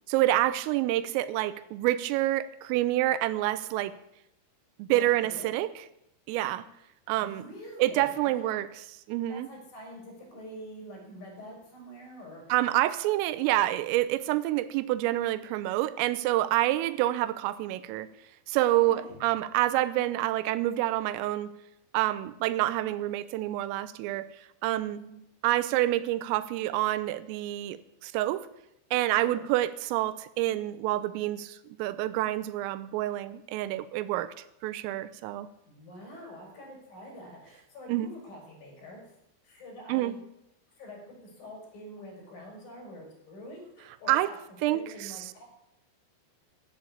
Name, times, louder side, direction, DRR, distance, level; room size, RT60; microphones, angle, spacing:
voice 1, 0.1-4.0 4.8-5.8 6.3-6.6 7.1-7.4 7.8-8.7 9.1-9.5 12.5-18.1 18.5-21.5 21.9-24.3 24.6-25.0 25.4-28.5 28.9-34.3 34.6-35.5 37.9-38.1 39.9-40.1 44.1-44.3 44.6-45.1, right 15 dB, 85° right, 15 dB, 3.2 m, -27 dB
voice 2, 4.9-5.6 7.2-8.5 9.3-12.7 18.7-19.1 24.9-25.2 29.2-29.4 35.7-39.0 39.4-40.2 40.7-45.4, equal, 45° left, 0 dB, 6.2 m, -46 dB
15.0 x 7.7 x 8.3 m, 0.81 s
omnidirectional pair, 5.9 m